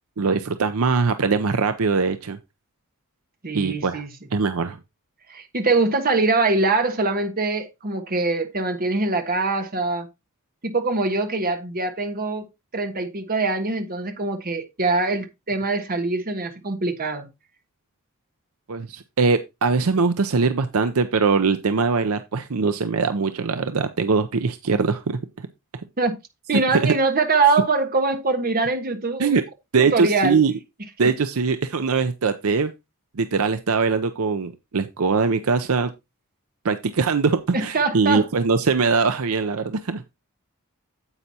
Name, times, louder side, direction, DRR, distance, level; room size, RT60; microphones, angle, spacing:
voice 1, 0.2-2.4 3.5-4.0 4.3-4.8 18.7-25.5 25.7-25.8 26.7-26.9 29.2-29.4 29.7-30.5 31.0-32.7 33.2-35.9 36.6-40.0, right 4 dB, 70° right, 0.6 m, -22 dB
voice 2, 3.4-4.1 5.3-10.1 10.6-12.5 12.7-17.3 26.0-26.2 26.5-29.4 29.8-30.4 37.5-38.2, right 3 dB, 40° right, 1.3 m, -23 dB
9.7 x 8.1 x 2.8 m
head